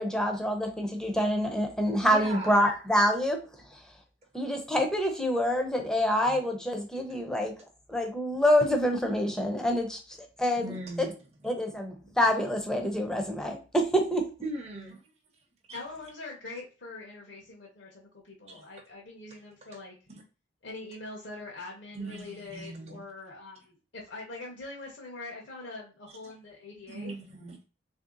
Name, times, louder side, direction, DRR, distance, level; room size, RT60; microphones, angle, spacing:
voice 1, 0.0-3.4 4.3-7.5 7.9-10.7 11.0-11.1 11.4-14.2, equal, 5° left, 0.6 m, -26 dB
voice 2, 2.0-2.6 10.6-11.1 14.4-15.0 15.7-15.8 18.5-18.6 19.3-19.4 20.1-20.2 21.9-23.0 26.1-26.3 26.9-27.6, right 2 dB, 35° right, 0.7 m, -40 dB
voice 3, 15.7-19.9 20.6-27.1, left 3 dB, 65° left, 0.9 m, -43 dB
3.3 x 2.7 x 3.7 m
head